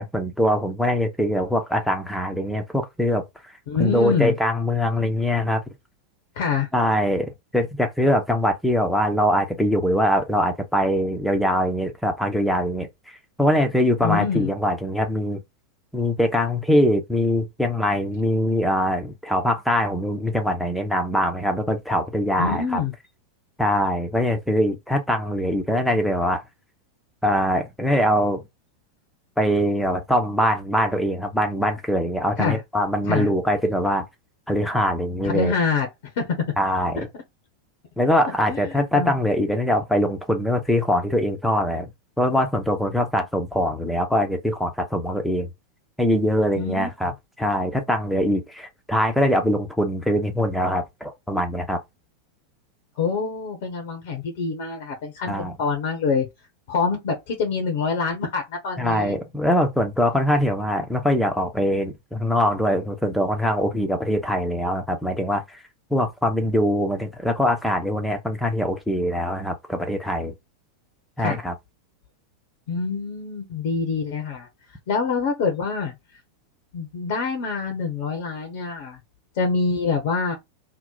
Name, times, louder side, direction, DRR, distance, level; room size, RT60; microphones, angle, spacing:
voice 1, 0.0-3.2 3.8-5.6 6.7-12.9 13.4-15.4 15.9-22.8 23.6-26.4 27.2-28.4 29.4-34.1 34.5-35.5 36.6-37.1 38.0-41.9 42.2-45.5 46.0-47.1 47.4-51.8 55.3-55.5 58.8-65.6 65.9-70.3 71.2-71.5, equal, ahead, 0.8 m, -22 dB
voice 2, 3.7-4.3 6.4-6.7 14.0-14.5 22.4-22.9 32.4-32.6 33.0-33.3 35.2-35.9 36.2-36.4 37.0-37.1 38.5-39.1 46.6-47.1 53.0-56.3 56.7-59.1 71.2-71.4 72.7-74.5 74.9-75.9 76.7-79.0 79.4-80.3, left 5 dB, 50° left, 0.8 m, -25 dB
2.9 x 2.1 x 3.8 m
figure-of-eight pair, 90°, 0 cm